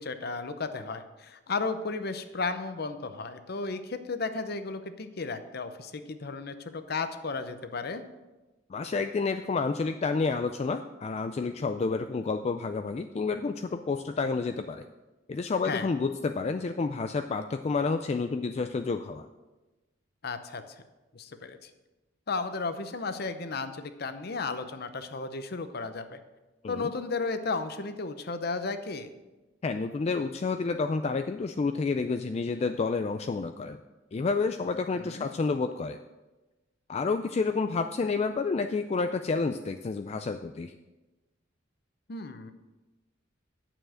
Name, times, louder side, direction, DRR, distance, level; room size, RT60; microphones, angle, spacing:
voice 1, 0.0-8.0 15.6-15.9 20.2-20.6 21.1-21.7 22.3-26.2 26.7-29.1 34.9-35.3 42.1-42.5, left 4 dB, 55° left, 10 dB, 0.7 m, -34 dB
voice 2, 8.7-14.8 15.3-19.3 26.6-26.9 29.6-33.8 34.1-36.0 36.9-40.7, left 4 dB, 35° left, 8 dB, 0.3 m, -29 dB
8.9 x 7.1 x 6.4 m, 1.1 s
head